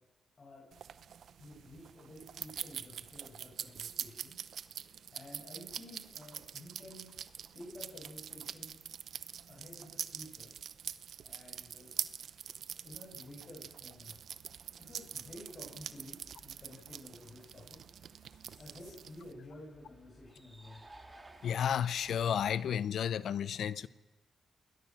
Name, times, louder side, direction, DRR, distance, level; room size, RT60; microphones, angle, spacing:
voice 1, 0.4-0.7 1.4-4.4 5.1-7.1 7.5-8.8 9.5-10.5 11.2-11.9 12.8-14.2 14.8-17.8 18.6-20.8, left 1 dB, 45° left, 8.0 m, -52 dB
sound 1, 0.7-19.3, right 8 dB, 75° right, 0.8 m, -45 dB
sound 2, 14.5-22.7, right 2 dB, 20° right, 3.4 m, -59 dB
voice 2, 21.4-23.9, left 9 dB, 75° left, 0.7 m, -32 dB
28.5 x 20.5 x 6.4 m
cardioid pair, 65°, 0 cm